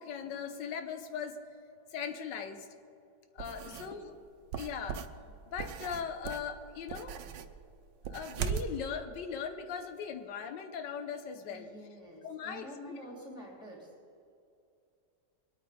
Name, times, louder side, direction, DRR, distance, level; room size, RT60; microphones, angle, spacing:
voice 1, 0.0-1.3 1.9-2.7 3.3-4.1 4.6-5.0 5.5-7.2 8.1-11.7 12.2-12.7, left 7 dB, 90° left, 7 dB, 1.5 m, -39 dB
sound 1, 3.4-3.9 4.5-8.7, right 8 dB, 85° right, 1.3 m, -39 dB
voice 2, 3.6-4.2 11.5-13.9, equal, ahead, -4 dB, 3.3 m, -48 dB
22.0 x 9.1 x 4.2 m, 2.5 s
omnidirectional pair, 1.9 m